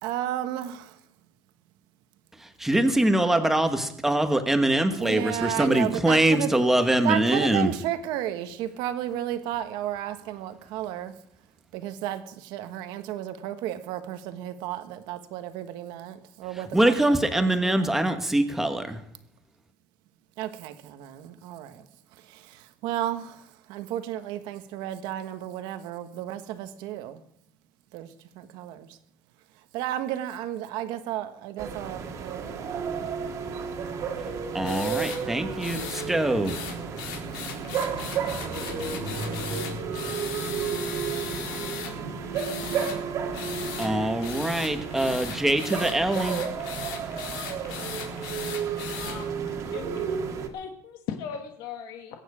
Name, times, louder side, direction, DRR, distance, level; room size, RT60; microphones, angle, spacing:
voice 1, 0.0-0.9 5.0-6.5 7.0-11.1 11.7-16.9 17.4-17.9 20.4-21.8 22.8-23.3 23.7-27.2 27.9-28.1 28.4-28.9 29.7-33.1 33.9-34.3 36.5-36.7, right 12 dB, 65° right, 9 dB, 1.3 m, -33 dB
voice 2, 2.6-7.7 16.7-19.0 34.5-36.5 43.8-46.4, right 1 dB, 5° right, 7 dB, 1.2 m, -23 dB
sound 1, 31.6-50.5, right 6 dB, 40° right, 1.9 m, -32 dB
sound 2, 34.6-35.2 35.6-36.1 36.4-41.9 42.3-43.0 43.3-43.9 44.2-49.1, left 8 dB, 80° left, 3.8 m, -38 dB
voice 3, 48.9-49.3 49.7-50.1 50.5-52.2, left 7 dB, 60° left, 5 dB, 1.4 m, -38 dB
22.0 x 9.2 x 4.9 m, 0.71 s
cardioid pair, 165°, 8 cm